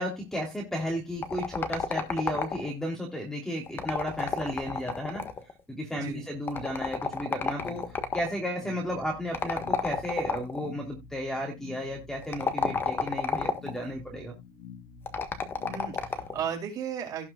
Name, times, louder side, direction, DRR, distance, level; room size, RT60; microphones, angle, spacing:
voice 1, 0.0-5.2 5.7-14.4, equal, 5° left, 1 dB, 2.8 m, -34 dB
sound 1, 1.2-2.8 3.7-5.5 6.5-8.3 9.3-10.7 12.2-13.8 15.1-16.4, left 5 dB, 20° left, 1.3 m, -31 dB
voice 2, 5.9-6.3 15.7-17.3, right 8 dB, 35° right, 1 dB, 5.2 m, -35 dB
sound 2, 7.5-16.6, left 6 dB, 75° left, 5.5 m, -48 dB
17.5 x 5.9 x 2.3 m, 0.21 s
cardioid pair, 170°, 11 cm